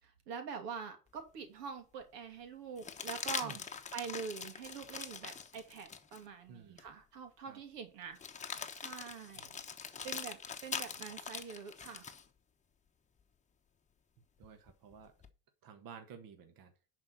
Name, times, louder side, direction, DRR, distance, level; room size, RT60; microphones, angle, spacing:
voice 1, 0.0-3.6 3.9-8.2 8.7-9.5 10.0-12.1, right 6 dB, 80° right, 2.9 m, -45 dB
sound 1, 1.2-1.3 2.8-6.2 6.8-6.9 8.2-12.3 14.4-15.3, left 6 dB, 15° left, 1.1 m, -43 dB
voice 2, 6.5-6.8 7.4-7.6 9.3-9.5 14.4-15.1 15.6-16.7, right 7 dB, 45° right, 1.7 m, -53 dB
10.5 x 4.9 x 5.7 m
supercardioid pair, 115°, 47 cm